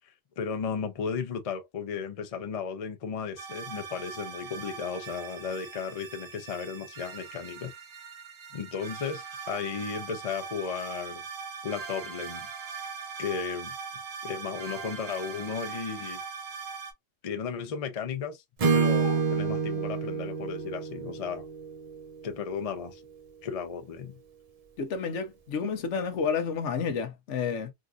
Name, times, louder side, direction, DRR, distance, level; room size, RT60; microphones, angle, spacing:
voice 1, 0.0-7.7 8.5-11.2 11.6-12.5 13.2-13.7 14.2-16.2 17.2-18.4 18.7-21.5 22.2-23.0 23.4-24.1, left 6 dB, 45° left, 0.5 m, -35 dB
sound 1, 3.4-16.9, right 6 dB, 70° right, 1.2 m, -41 dB
Acoustic guitar / Strum, 18.6-22.6, right 5 dB, 45° right, 0.5 m, -28 dB
voice 2, 24.8-27.7, left 6 dB, 70° left, 1.0 m, -30 dB
3.8 x 2.5 x 2.3 m
omnidirectional pair, 1.3 m